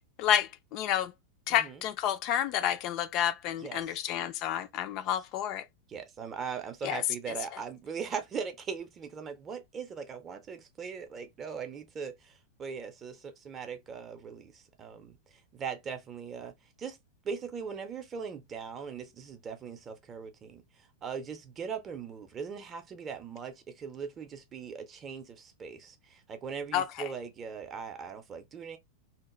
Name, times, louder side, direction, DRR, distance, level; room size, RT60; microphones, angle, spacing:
voice 1, 0.2-1.1 1.5-5.6 6.8-7.0 26.7-26.8, left 10 dB, 40° left, 0.3 m, -29 dB
voice 2, 1.5-1.8 3.6-4.1 5.1-5.2 5.9-12.3 12.6-15.2 15.5-17.0 17.2-20.6 21.0-28.8, right 6 dB, 25° right, 0.6 m, -40 dB
2.8 x 2.2 x 3.0 m
figure-of-eight pair, 90°, 0 cm